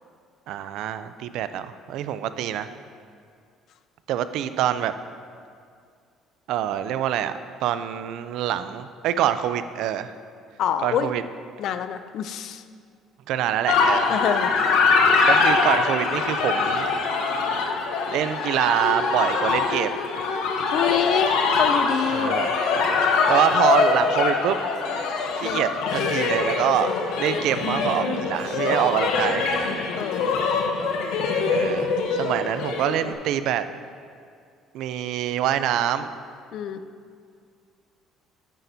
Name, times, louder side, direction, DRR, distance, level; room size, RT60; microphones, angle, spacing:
voice 1, 0.5-2.7 4.1-4.9 6.5-7.3 7.6-10.1 10.8-11.2 13.3-14.1 15.3-16.9 18.1-20.0 22.1-22.5 23.3-24.6 25.4-26.9 27.2-29.5 31.5-33.7 34.7-36.1, right 11 dB, 75° right, 12 dB, 0.4 m, -25 dB
voice 2, 10.6-11.1 11.6-12.6 14.1-14.5 20.7-22.4 25.4-25.6 26.0-26.3 29.9-30.3 36.5-36.8, left 9 dB, 60° left, 11 dB, 0.4 m, -26 dB
sound 1, 13.7-33.1, left 4 dB, 80° left, 0.8 m, -23 dB
9.6 x 8.2 x 2.7 m, 2.2 s
cardioid pair, 110°, 0 cm